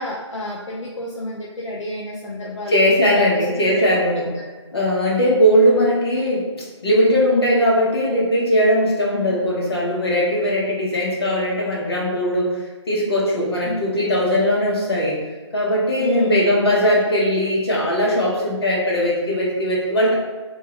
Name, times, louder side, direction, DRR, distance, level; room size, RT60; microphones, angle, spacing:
voice 1, 0.0-4.5 9.2-9.4 13.6-14.0 16.0-16.6, left 1 dB, 75° left, -3 dB, 0.6 m, -31 dB
voice 2, 2.7-4.3 4.7-6.5 6.8-12.5 12.9-15.2 15.5-20.1, equal, 55° left, -5 dB, 1.4 m, -19 dB
3.5 x 3.0 x 3.1 m, 1.3 s
hypercardioid pair, 165°, 15 cm